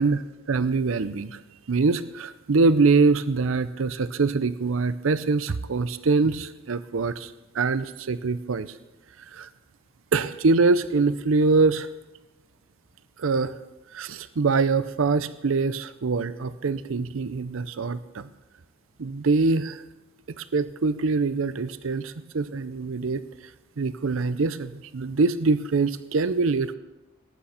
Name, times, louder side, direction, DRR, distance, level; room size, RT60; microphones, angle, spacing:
voice 1, 0.0-1.4 1.7-8.8 9.2-9.5 10.1-11.9 13.2-13.5 13.9-18.3 19.0-19.8 20.3-23.2 23.8-26.7, right 4 dB, 70° right, 14 dB, 0.6 m, -24 dB
18.5 x 8.5 x 5.7 m, 1.0 s
head